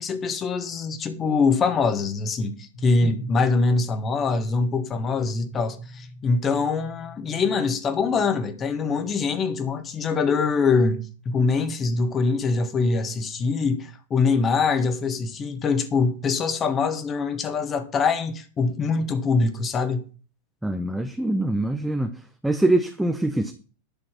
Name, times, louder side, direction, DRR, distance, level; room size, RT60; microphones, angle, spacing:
voice 1, 0.0-20.1, left 4 dB, 25° left, 1.7 m, -24 dB
sound 1, 2.7-12.3, left 1 dB, 80° left, 4.4 m, -44 dB
voice 2, 20.6-23.5, right 2 dB, 5° right, 0.9 m, -24 dB
11.0 x 6.3 x 5.9 m
figure-of-eight pair, 90°, 0 cm